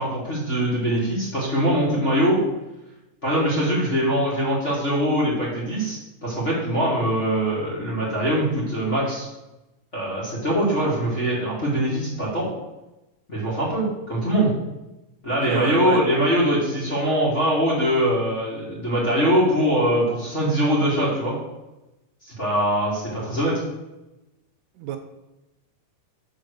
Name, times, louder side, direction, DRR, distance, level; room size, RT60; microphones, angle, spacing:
voice 1, 0.0-2.4 3.2-9.3 9.9-12.5 13.3-14.5 15.2-21.4 22.2-23.5, equal, 25° left, -7 dB, 1.8 m, -22 dB
voice 2, 15.4-16.0 24.8-25.0, right 9 dB, 80° right, 6 dB, 2.0 m, -27 dB
6.3 x 4.6 x 6.5 m, 0.98 s
omnidirectional pair, 3.8 m